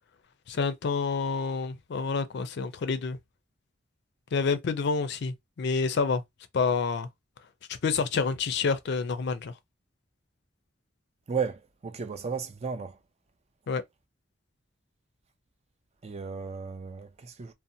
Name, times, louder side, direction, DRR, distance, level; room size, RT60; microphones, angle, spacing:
voice 1, 0.5-3.2 4.3-6.2 6.5-7.1 7.7-9.5 13.7-13.8, left 4 dB, 60° left, 0.4 m, -28 dB
voice 2, 11.3-13.0 16.0-17.5, right 5 dB, 35° right, 0.4 m, -34 dB
2.6 x 2.0 x 2.6 m
head